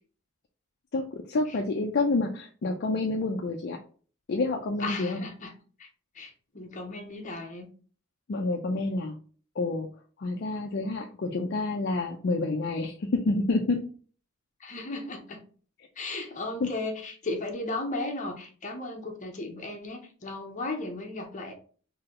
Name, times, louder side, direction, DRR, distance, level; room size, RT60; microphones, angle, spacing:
voice 1, 0.9-3.8 4.3-5.2 8.3-9.2 9.6-9.9 10.2-13.9 16.6-16.7, left 3 dB, 55° left, 2 dB, 0.4 m, -28 dB
voice 2, 4.8-5.5 5.8-5.9 6.1-7.7 14.6-15.4 16.0-21.5, left 2 dB, 40° left, 2 dB, 0.8 m, -35 dB
3.8 x 2.8 x 3.0 m, 0.42 s
head